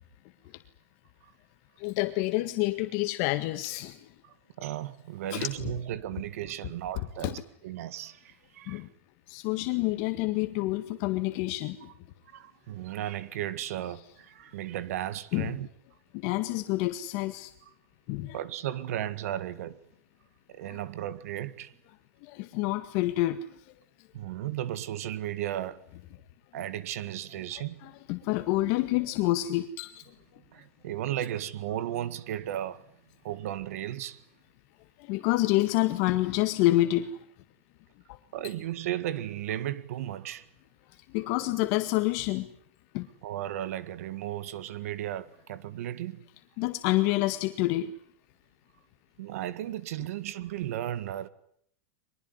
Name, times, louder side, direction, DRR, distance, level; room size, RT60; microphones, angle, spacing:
voice 1, 1.8-4.0 5.3-5.5 7.2-7.3 8.7-8.9 9.3-11.8 15.3-15.6 16.1-17.5 18.1-18.3 22.2-23.4 27.8-30.0 35.0-37.2 38.1-38.2 41.1-42.5 42.9-43.1 46.6-47.9, left 17 dB, 55° left, 1.8 m, -28 dB
voice 2, 4.2-8.9 12.3-15.7 18.3-19.8 20.5-21.7 24.1-25.8 26.5-27.9 30.5-32.8 33.2-34.2 38.3-40.4 43.2-46.2 49.2-51.3, right 12 dB, 75° right, 1.8 m, -35 dB
23.0 x 21.0 x 9.7 m
supercardioid pair, 135°, 8 cm